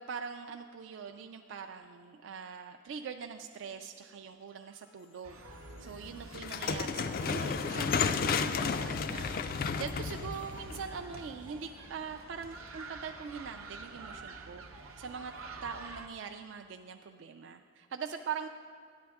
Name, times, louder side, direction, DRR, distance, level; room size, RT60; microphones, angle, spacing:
voice 1, 0.0-5.4 5.8-15.3 15.6-18.5, right 6 dB, 65° right, 6 dB, 0.3 m, -42 dB
sound 1, 4.3-13.6, left 2 dB, 70° left, 0.8 m, -54 dB
sound 2, 5.2-16.1, right 2 dB, 90° right, 0.8 m, -48 dB
sound 3, 6.3-11.5, left 5 dB, 45° left, 0.3 m, -32 dB
12.0 x 9.4 x 3.5 m, 2.2 s
head